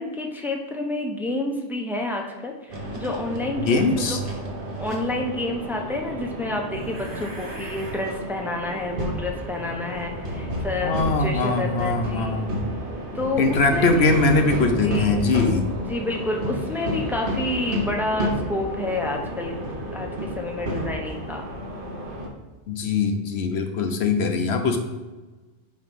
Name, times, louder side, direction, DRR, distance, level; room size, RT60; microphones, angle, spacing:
voice 1, 0.0-4.2 4.8-12.5 13.1-14.1 14.8-15.2 15.9-19.5 19.9-21.4, left 2 dB, ahead, 1 dB, 0.7 m, -29 dB
sound 1, 2.7-22.3, equal, 50° right, 1.3 m, -31 dB
voice 2, 3.6-4.2 10.8-12.5 13.4-15.7 22.7-24.8, left 3 dB, 65° left, 6 dB, 1.1 m, -21 dB
9.0 x 3.1 x 5.4 m, 1.2 s
omnidirectional pair, 1.2 m